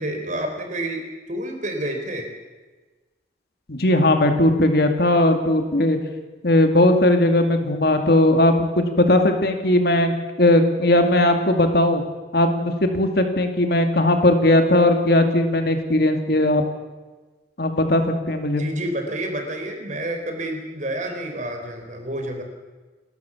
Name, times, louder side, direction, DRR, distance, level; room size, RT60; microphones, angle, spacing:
voice 1, 0.0-2.3 18.5-22.4, right 1 dB, 45° right, 4 dB, 4.0 m, -29 dB
voice 2, 3.7-6.0 6.4-12.0 12.3-16.6 17.6-18.6, left 1 dB, 60° left, 5 dB, 2.3 m, -18 dB
29.0 x 13.5 x 7.2 m, 1.3 s
head